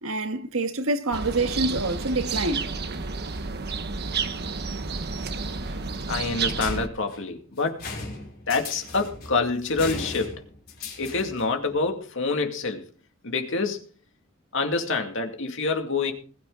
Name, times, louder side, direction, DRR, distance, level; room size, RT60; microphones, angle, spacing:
voice 1, 0.0-2.7, right 2 dB, 80° right, 1.6 m, -26 dB
sound 1, 1.1-6.9, right 4 dB, 55° right, 1.2 m, -31 dB
voice 2, 6.1-7.9 8.5-10.4 11.0-12.9 13.2-13.8 14.5-16.1, left 3 dB, 65° left, 2.4 m, -26 dB
sound 2, 6.6-11.5, left 3 dB, 50° left, 5.8 m, -38 dB
20.5 x 9.3 x 3.9 m
head